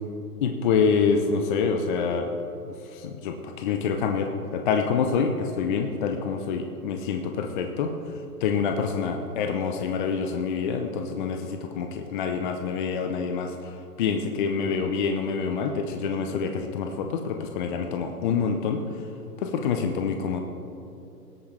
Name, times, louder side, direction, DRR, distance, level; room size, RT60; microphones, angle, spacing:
voice 1, 0.4-2.4 2.7-7.9 8.4-18.8 19.4-20.4, left 6 dB, 30° left, 5 dB, 0.6 m, -26 dB
18.0 x 8.2 x 3.3 m, 2.9 s
hypercardioid pair, 135°, 48 cm